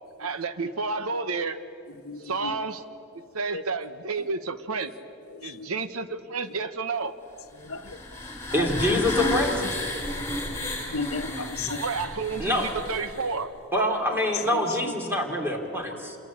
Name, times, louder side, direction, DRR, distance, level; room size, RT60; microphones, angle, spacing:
voice 1, 0.2-1.6 2.2-2.8 3.1-4.9 5.4-7.1 11.7-13.5, right 4 dB, 70° right, 11 dB, 1.0 m, -30 dB
voice 2, 2.0-2.5 3.5-3.6 5.3-5.7 7.6-8.0 8.5-9.4 10.9-11.9 14.5-14.9, left 3 dB, 70° left, 8 dB, 1.2 m, -33 dB
sound 1, 7.6-13.4, left 1 dB, 15° left, 3.8 m, -33 dB
voice 3, 8.5-9.6 12.4-12.7 13.7-16.2, left 1 dB, 10° right, 3 dB, 3.1 m, -25 dB
27.5 x 22.0 x 8.6 m, 2.7 s
head